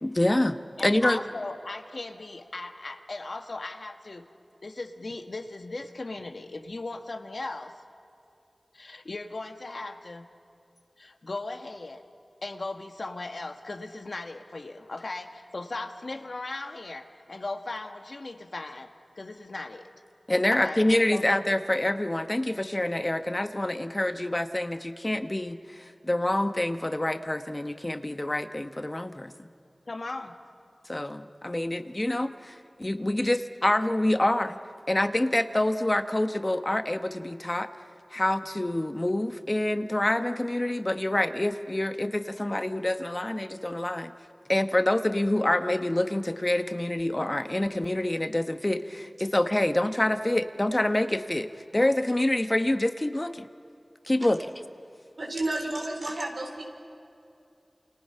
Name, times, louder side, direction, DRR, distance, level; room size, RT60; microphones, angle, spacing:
voice 1, 0.0-1.2 20.3-29.3 30.9-34.6 34.9-37.7 38.1-44.1 44.5-53.5 54.1-54.5, left 1 dB, 30° left, 9 dB, 1.0 m, -26 dB
voice 2, 0.8-4.3 4.6-7.8 8.7-10.3 11.0-12.1 12.4-19.9 20.5-20.8 21.1-21.3 29.9-30.4, left 2 dB, 70° left, 6 dB, 1.4 m, -37 dB
voice 3, 55.2-56.6, right 2 dB, 85° right, 0 dB, 4.1 m, -31 dB
29.5 x 27.5 x 5.7 m, 2.6 s
wide cardioid pair, 55°, 0 cm